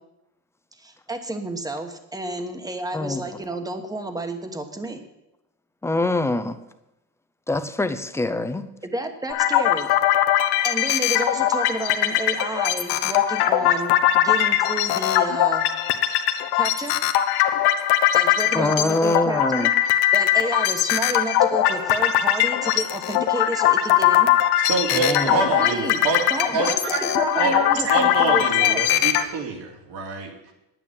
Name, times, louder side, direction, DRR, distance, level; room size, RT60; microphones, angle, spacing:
voice 1, 0.8-5.0 8.8-9.9 10.6-15.7 16.5-17.0 18.1-19.7 20.1-24.3 25.6-26.0 26.3-28.8, right 2 dB, 10° right, 7 dB, 1.2 m, -30 dB
voice 2, 2.9-3.4 5.8-6.6 7.5-8.7 18.5-19.7 24.9-25.5, left 2 dB, 5° left, 11 dB, 0.6 m, -24 dB
sound 1, 9.3-29.2, left 12 dB, 80° left, 1.1 m, -21 dB
voice 3, 24.6-27.0 27.3-30.5, right 3 dB, 75° right, 1 dB, 3.3 m, -26 dB
10.0 x 9.1 x 8.6 m, 0.90 s
cardioid pair, 155°, 39 cm